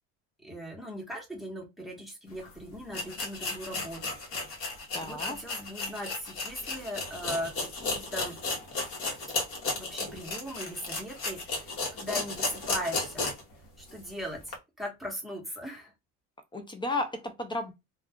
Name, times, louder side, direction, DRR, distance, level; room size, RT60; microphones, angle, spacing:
voice 1, 0.4-4.7 5.0-8.4 9.8-13.3 13.8-15.9, equal, ahead, 1.0 m, -39 dB
sound 1, 2.4-2.5 2.9-13.5 13.9-14.0 14.5-14.6, left 3 dB, 45° left, 1.0 m, -34 dB
voice 2, 4.9-5.4 16.5-17.7, left 2 dB, 15° left, 0.4 m, -33 dB
2.3 x 2.2 x 3.5 m
cardioid pair, 130°, 31 cm